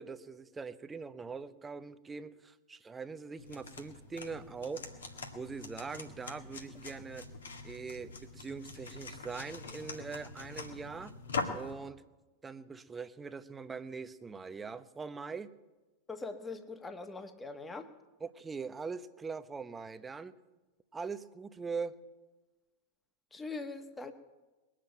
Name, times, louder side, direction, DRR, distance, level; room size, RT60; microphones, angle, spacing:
voice 1, 0.0-4.9 5.3-7.3 7.6-11.1 11.5-12.0 12.4-15.5 18.2-20.3 20.9-21.9, right 5 dB, 15° right, 12 dB, 0.8 m, -42 dB
sound 1, 3.4-11.7, left 4 dB, 80° left, 1.9 m, -43 dB
voice 2, 16.1-17.9 23.3-24.1, left 3 dB, 15° left, 8 dB, 1.4 m, -42 dB
21.0 x 7.6 x 9.1 m, 1.2 s
figure-of-eight pair, 95°, 0 cm